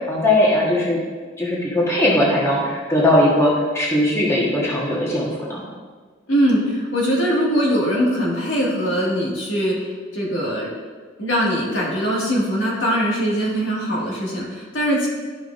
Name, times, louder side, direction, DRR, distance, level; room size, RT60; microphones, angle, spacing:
voice 1, 0.1-1.0 1.4-5.6, left 1 dB, 15° left, -5 dB, 1.4 m, -19 dB
voice 2, 6.3-10.7 11.2-15.1, equal, 80° left, -4 dB, 2.0 m, -21 dB
12.0 x 5.6 x 2.6 m, 1.5 s
head